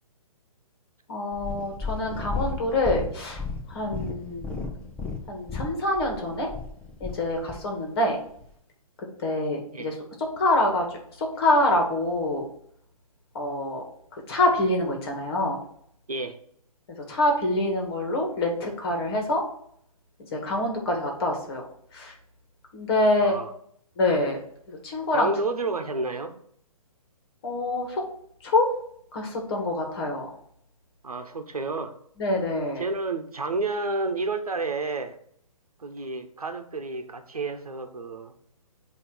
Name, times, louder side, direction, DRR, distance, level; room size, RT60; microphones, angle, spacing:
voice 1, 1.1-3.4 3.7-4.5 5.3-6.5 7.0-8.2 9.2-12.5 13.3-13.8 14.3-15.6 16.9-19.4 20.3-21.6 21.9-22.1 22.7-23.4 24.0-24.4 24.7-25.3 27.4-28.0 28.4-28.7 29.1-30.3 32.2-32.9, left 1 dB, 40° left, 1 dB, 2.1 m, -26 dB
Purr, 1.3-7.6 8.4-8.5, left 4 dB, 5° left, 0.7 m, -34 dB
voice 2, 25.1-26.3 31.0-31.9 32.8-35.2 35.8-38.3, right 3 dB, 75° right, 7 dB, 1.0 m, -30 dB
8.1 x 3.1 x 6.3 m, 0.67 s
figure-of-eight pair, 130°, 19 cm